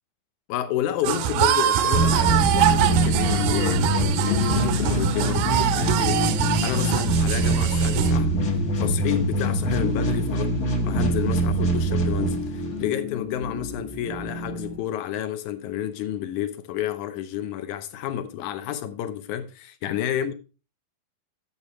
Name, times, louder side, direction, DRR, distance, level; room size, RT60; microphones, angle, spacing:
voice 1, 0.5-6.3 6.6-8.3 8.8-10.5 10.8-20.3, left 10 dB, 70° left, 2.0 m, -30 dB
sound 1, 1.0-8.1, right 11 dB, 80° right, 2.3 m, -24 dB
sound 2, 1.9-12.9, right 1 dB, 50° left, 1.1 m, -24 dB
sound 3, 2.0-14.8, left 5 dB, 10° left, 0.5 m, -33 dB
11.5 x 7.2 x 3.1 m
omnidirectional pair, 4.2 m